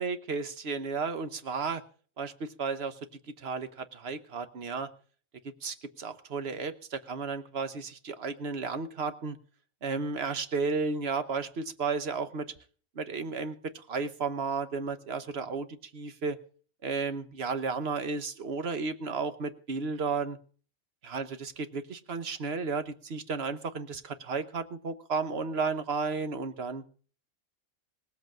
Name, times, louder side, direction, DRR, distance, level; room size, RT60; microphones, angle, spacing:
voice 1, 0.0-1.8 2.2-3.0 3.4-4.9 5.6-9.4 9.8-12.5 13.0-15.7 15.9-16.4 16.8-20.4 21.0-26.8, right 4 dB, 50° right, 10 dB, 1.3 m, -33 dB
18.5 x 8.0 x 7.3 m, 0.43 s
omnidirectional pair, 1.4 m